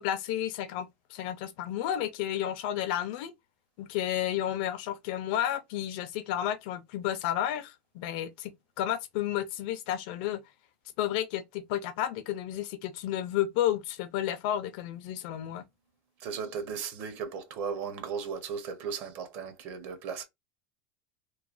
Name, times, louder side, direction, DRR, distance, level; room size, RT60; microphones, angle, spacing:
voice 1, 0.0-3.3 3.8-10.4 11.0-15.7, left 11 dB, 55° left, 0.4 m, -32 dB
voice 2, 16.2-20.2, right 6 dB, 40° right, 0.7 m, -36 dB
3.0 x 2.1 x 2.4 m
supercardioid pair, 170°, 5 cm